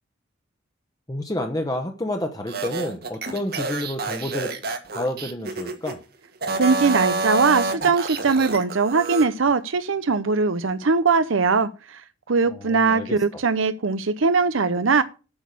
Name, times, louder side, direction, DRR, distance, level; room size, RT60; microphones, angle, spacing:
voice 1, 1.1-4.5 4.9-6.0 12.5-13.2, left 1 dB, 20° left, 1.0 m, -29 dB
sound 1, 2.5-6.0 6.4-9.3, right 3 dB, 50° right, 1.6 m, -28 dB
voice 2, 6.6-12.0 12.3-15.0, right 4 dB, 85° right, 0.7 m, -21 dB
8.9 x 6.2 x 8.3 m
head